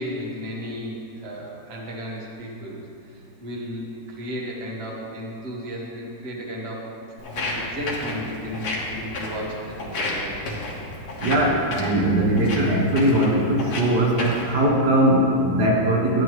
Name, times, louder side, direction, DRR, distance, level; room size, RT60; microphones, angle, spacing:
voice 1, 0.0-6.9 7.3-10.3, equal, 35° right, -3 dB, 1.5 m, -34 dB
Walk footsteps, 7.2-14.5, left 2 dB, 65° left, 1.9 m, -32 dB
voice 2, 11.2-16.2, right 1 dB, 65° right, -2 dB, 1.7 m, -20 dB
12.5 x 9.4 x 3.2 m, 2.5 s
omnidirectional pair, 2.0 m